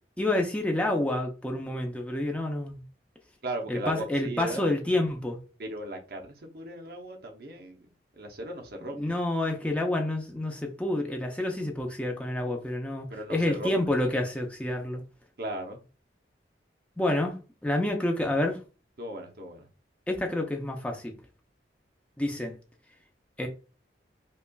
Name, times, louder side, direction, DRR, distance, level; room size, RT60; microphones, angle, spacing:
voice 1, 0.2-2.8 3.7-5.4 8.9-15.0 17.0-18.6 20.1-21.1 22.2-22.5 23.4-23.5, left 1 dB, 5° left, 0.5 m, -28 dB
voice 2, 3.4-4.6 5.6-7.9 8.1-9.2 13.1-13.8 15.4-15.8 19.0-19.7, right 1 dB, 55° right, 0.7 m, -37 dB
5.2 x 2.4 x 2.3 m
head